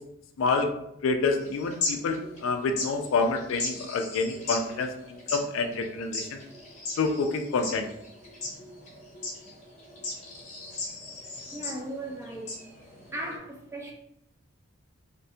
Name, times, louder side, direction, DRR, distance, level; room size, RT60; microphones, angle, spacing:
voice 1, 0.4-0.7 1.0-6.4 7.0-7.9, left 4 dB, 75° left, 6 dB, 0.3 m, -28 dB
sound 1, 1.3-13.4, left 3 dB, 35° left, 0.7 m, -38 dB
voice 2, 11.5-12.5 13.1-13.9, right 1 dB, 15° right, 0 dB, 0.3 m, -37 dB
2.5 x 2.2 x 2.6 m, 0.78 s
head